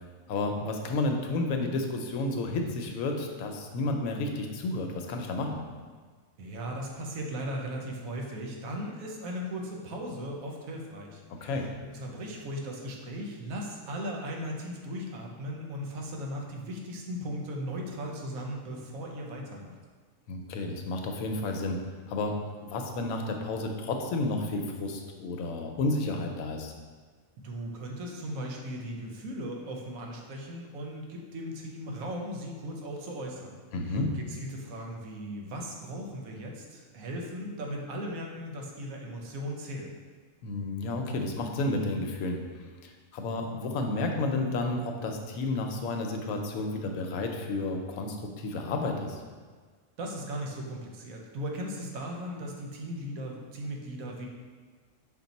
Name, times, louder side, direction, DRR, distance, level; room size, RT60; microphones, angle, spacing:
voice 1, 0.3-5.5 11.4-11.7 20.3-21.8 22.1-22.3 22.6-26.7 33.7-34.1 40.4-42.4 42.8-49.2, left 2 dB, 85° left, 3 dB, 1.0 m, -31 dB
voice 2, 6.4-19.8 27.4-33.6 33.9-39.9 50.0-54.3, equal, 75° right, 0 dB, 1.1 m, -37 dB
5.3 x 2.5 x 4.0 m, 1.5 s
omnidirectional pair, 1.4 m